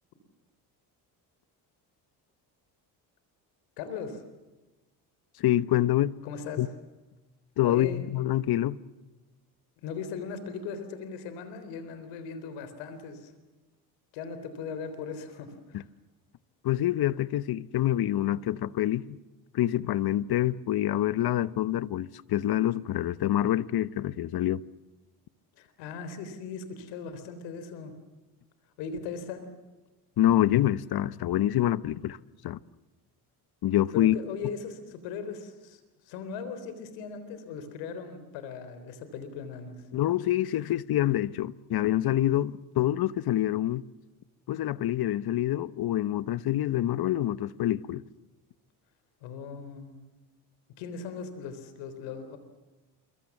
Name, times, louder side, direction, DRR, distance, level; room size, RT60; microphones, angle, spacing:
voice 1, 3.8-4.2 6.2-6.6 7.6-8.1 9.8-13.3 14.1-15.9 25.6-27.9 28.8-29.4 33.9-39.8 49.2-50.0 50.8-52.4, left 6 dB, 90° left, 3.8 m, -38 dB
voice 2, 5.4-6.2 6.6-6.7 7.6-8.8 16.6-19.2 19.5-24.6 30.2-32.2 32.4-32.6 33.6-34.2 39.9-43.8 44.5-48.0, left 13 dB, 60° left, 1.0 m, -26 dB
28.0 x 24.5 x 7.3 m
supercardioid pair, 75°, 42 cm